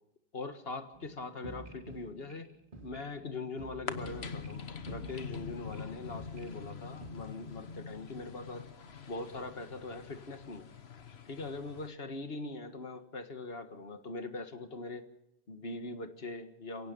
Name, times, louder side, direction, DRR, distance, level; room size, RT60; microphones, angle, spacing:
voice 1, 0.3-2.5 2.8-8.7 9.1-10.7 11.3-15.1 15.5-16.9, left 3 dB, 75° left, 8 dB, 1.9 m, -42 dB
sound 1, 0.9-7.1, right 2 dB, 55° right, 3.1 m, -50 dB
sound 2, 3.9-11.9, left 5 dB, 90° left, 1.4 m, -44 dB
29.0 x 17.0 x 5.4 m, 0.81 s
omnidirectional pair, 1.0 m